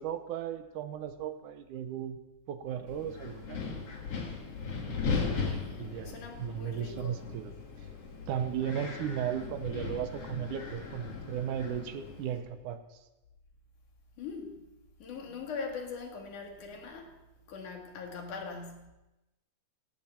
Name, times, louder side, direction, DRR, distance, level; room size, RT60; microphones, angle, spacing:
voice 1, 0.0-2.2 2.5-3.9 5.8-7.5 8.3-12.8, right 9 dB, 75° right, 10 dB, 2.4 m, -36 dB
Wind, 2.9-12.4, left 4 dB, 50° left, 3.0 m, -38 dB
voice 2, 5.3-7.3 14.2-14.6 15.0-17.1 17.5-18.9, left 4 dB, 70° left, 2 dB, 3.6 m, -42 dB
18.0 x 16.0 x 4.5 m, 1.0 s
omnidirectional pair, 3.7 m